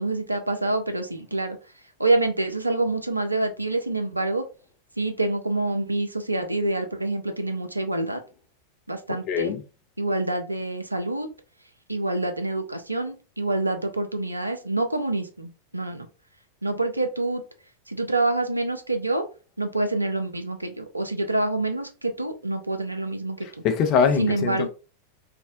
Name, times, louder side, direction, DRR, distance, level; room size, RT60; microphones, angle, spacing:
voice 1, 0.0-1.6 2.0-4.5 5.0-8.2 8.9-9.5 10.0-11.3 11.9-16.1 16.6-17.4 17.9-19.2 19.6-23.5 24.2-24.7, right 2 dB, 85° right, 0.4 m, -26 dB
voice 2, 9.3-9.6 23.6-24.7, left 6 dB, 40° left, 0.5 m, -22 dB
2.5 x 2.0 x 2.5 m
figure-of-eight pair, 90°, 0 cm